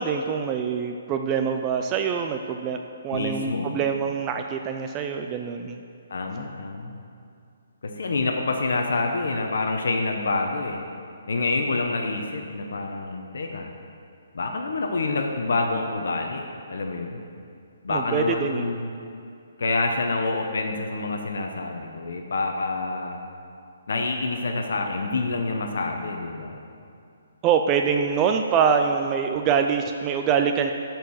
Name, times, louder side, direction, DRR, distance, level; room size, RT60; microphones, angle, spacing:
voice 1, 0.0-2.8 3.0-5.8 17.9-18.7 27.4-30.7, right 6 dB, 15° right, 5 dB, 0.3 m, -24 dB
voice 2, 3.1-3.7 6.1-6.9 7.8-10.8 11.3-13.7 14.3-16.4 16.7-17.2 17.8-18.9 19.6-23.2 23.9-26.6, left 3 dB, 70° left, 3 dB, 0.9 m, -27 dB
12.5 x 4.6 x 6.4 m, 2.5 s
hypercardioid pair, 170°, 0 cm